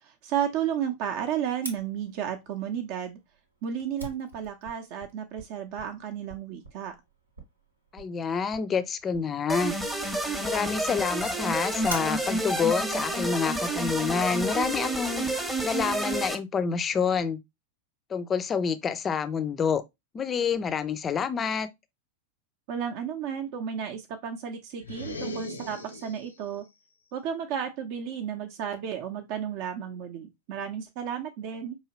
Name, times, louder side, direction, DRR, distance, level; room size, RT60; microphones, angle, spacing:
voice 1, 0.2-3.2 3.6-6.9 22.7-26.6 27.1-31.8, right 8 dB, 45° right, 0.6 m, -33 dB
Fire, 1.6-14.1, right 1 dB, 80° right, 1.0 m, -46 dB
voice 2, 7.9-9.7 10.4-15.3 15.6-17.4 18.1-19.8 20.1-21.7, left 6 dB, 20° left, 0.4 m, -28 dB
sound 1, 9.5-16.4, right 1 dB, 5° right, 0.7 m, -29 dB
sound 2, 24.8-26.4, left 2 dB, 75° left, 0.6 m, -38 dB
4.7 x 2.9 x 2.9 m
figure-of-eight pair, 90°, 0 cm